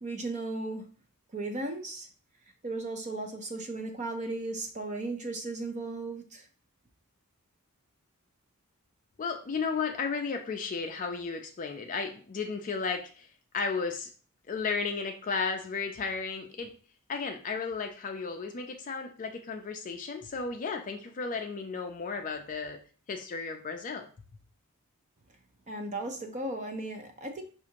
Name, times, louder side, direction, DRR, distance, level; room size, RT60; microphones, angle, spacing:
voice 1, 0.0-0.9 1.3-2.1 2.6-6.5 25.7-27.4, right 2 dB, 35° right, 5 dB, 0.6 m, -36 dB
voice 2, 9.2-13.3 13.5-14.1 14.5-16.7 17.1-22.8 23.1-24.1, left 5 dB, 35° left, 4 dB, 0.4 m, -34 dB
5.3 x 2.5 x 2.9 m, 0.39 s
head